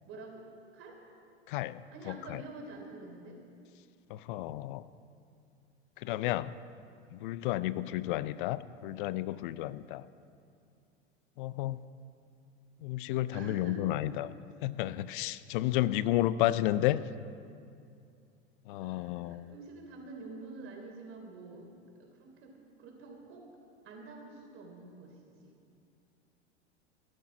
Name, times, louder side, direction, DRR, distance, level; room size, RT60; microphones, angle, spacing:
voice 1, 0.1-0.4 0.7-1.0 1.9-3.4 13.3-14.0 18.8-21.7 22.0-23.5 23.8-25.5, right 3 dB, 40° right, 1 dB, 3.4 m, -47 dB
voice 2, 1.5-1.8 2.1-2.4 4.1-4.8 6.0-6.5 7.1-10.0 11.4-11.8 12.8-14.3 14.6-17.0 18.7-19.5, left 15 dB, 50° left, 16 dB, 0.5 m, -32 dB
15.0 x 11.0 x 6.1 m, 2.4 s
hypercardioid pair, 95°, 33 cm